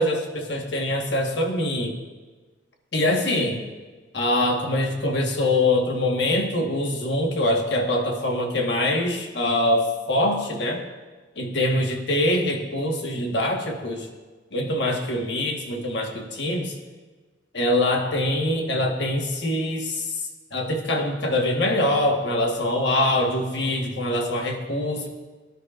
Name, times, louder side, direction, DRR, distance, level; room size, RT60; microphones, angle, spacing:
voice 1, 0.0-2.0 2.9-3.6 4.1-10.8 11.4-14.1 14.5-16.7 17.5-20.1 20.5-25.1, left 1 dB, 65° left, 2 dB, 1.4 m, -24 dB
18.0 x 10.0 x 2.5 m, 1.3 s
head